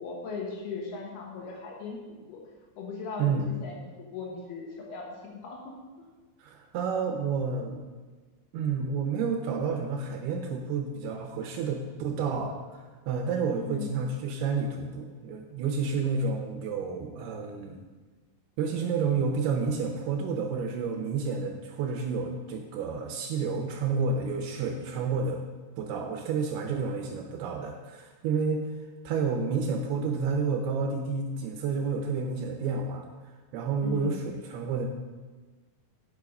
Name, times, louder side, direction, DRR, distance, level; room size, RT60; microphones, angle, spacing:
voice 1, 0.0-2.4 2.8-5.7 13.6-13.9 33.8-34.2, left 4 dB, 70° left, -1 dB, 3.0 m, -38 dB
voice 2, 3.2-3.5 6.4-7.8 8.5-17.8 18.6-25.4 25.8-28.7 29.1-33.1 33.5-34.9, right 5 dB, 75° right, 3 dB, 2.5 m, -30 dB
8.4 x 7.4 x 5.3 m, 1.3 s
omnidirectional pair, 5.1 m